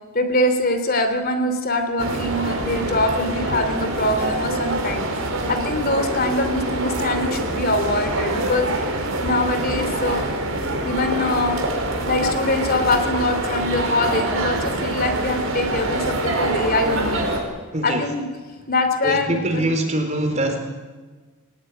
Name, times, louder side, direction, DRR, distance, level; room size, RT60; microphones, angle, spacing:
voice 1, 0.1-5.0 5.5-8.7 9.2-10.3 10.8-11.6 12.1-17.3 17.8-18.3 18.7-19.6, left 2 dB, 45° left, 8 dB, 2.9 m, -23 dB
sound 1, 2.0-17.4, right 1 dB, 75° right, 4.9 m, -25 dB
voice 2, 17.7-18.1 19.0-20.6, right 1 dB, 35° right, 5 dB, 3.9 m, -23 dB
23.0 x 18.5 x 9.7 m, 1.3 s
head